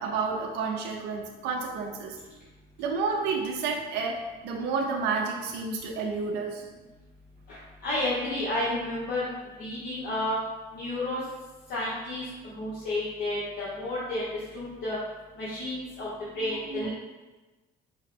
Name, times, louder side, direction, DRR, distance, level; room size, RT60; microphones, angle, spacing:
voice 1, 0.0-2.2 2.8-6.6 16.5-16.9, right 4 dB, 90° right, 1 dB, 0.5 m, -30 dB
voice 2, 7.8-9.3 9.6-10.4 10.7-11.2 11.7-12.2 12.6-14.3 14.5-15.0 15.4-16.1 16.3-16.9, left 1 dB, 65° left, -8 dB, 1.1 m, -31 dB
4.8 x 2.1 x 4.2 m, 1.2 s
cardioid pair, 110°, 17 cm